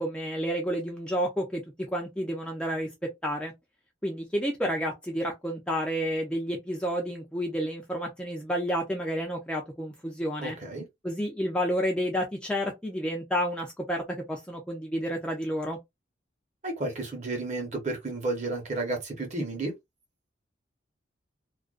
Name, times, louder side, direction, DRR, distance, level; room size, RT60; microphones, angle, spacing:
voice 1, 0.0-1.6 1.9-2.9 3.2-3.5 4.0-10.6 11.0-14.0 14.3-15.8, equal, 5° left, 0.4 m, -30 dB
voice 2, 10.4-10.8 16.6-19.7, right 2 dB, 40° right, 0.9 m, -32 dB
2.4 x 2.1 x 2.4 m
head